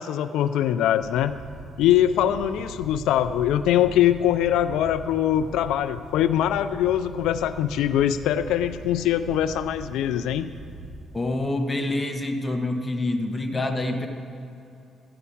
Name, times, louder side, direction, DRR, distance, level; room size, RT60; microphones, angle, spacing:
voice 1, 0.0-1.3 1.8-10.5, left 11 dB, 90° left, 11 dB, 0.3 m, -22 dB
sound 1, 1.0-11.0, right 2 dB, 60° right, 2.6 m, -41 dB
voice 2, 11.1-14.1, left 2 dB, 15° left, 3 dB, 1.2 m, -26 dB
13.0 x 5.5 x 8.4 m, 2.6 s
cardioid pair, 90°, 0 cm